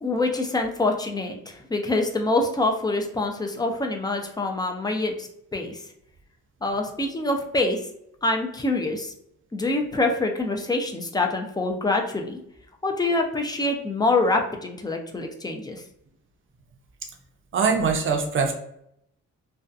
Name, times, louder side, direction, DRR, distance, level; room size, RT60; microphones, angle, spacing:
voice 1, 0.0-5.8 6.6-7.8 8.2-9.1 9.5-12.4 12.8-15.8, left 2 dB, 15° left, 3 dB, 0.4 m, -25 dB
voice 2, 17.5-18.5, right 5 dB, 45° right, 3 dB, 0.6 m, -22 dB
2.6 x 2.2 x 2.4 m, 0.74 s
cardioid pair, 90°, 30 cm